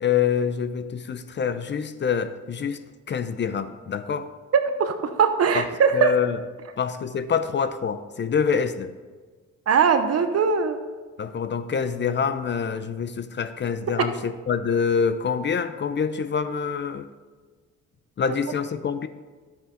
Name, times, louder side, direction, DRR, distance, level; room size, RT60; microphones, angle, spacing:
voice 1, 0.0-4.3 5.5-5.6 5.9-6.4 6.8-8.9 11.2-17.1 18.2-19.1, left 6 dB, 40° left, 12 dB, 0.6 m, -26 dB
voice 2, 4.5-6.1 9.7-10.8, right 6 dB, 55° right, 7 dB, 0.9 m, -20 dB
10.0 x 8.5 x 3.8 m, 1.4 s
cardioid pair, 90°, 30 cm